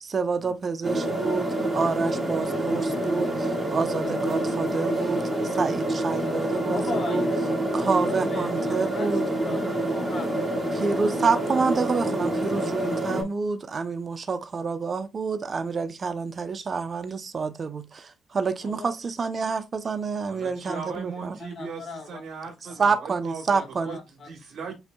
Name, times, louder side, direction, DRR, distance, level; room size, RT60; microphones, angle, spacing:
voice 1, 0.0-7.3 7.7-9.2 10.7-21.4 22.8-24.0, right 5 dB, 40° right, 0.6 m, -28 dB
sound 1, 0.8-13.2, right 1 dB, 20° right, 2.0 m, -27 dB
voice 2, 6.7-7.3 8.0-9.2 9.5-10.8 18.6-18.9 20.6-20.8 21.4-22.2 23.8-24.3 24.6-24.7, left 3 dB, 50° left, 1.6 m, -37 dB
voice 3, 20.3-24.8, right 5 dB, 65° right, 1.2 m, -38 dB
7.9 x 2.7 x 2.2 m
cardioid pair, 90°, 0 cm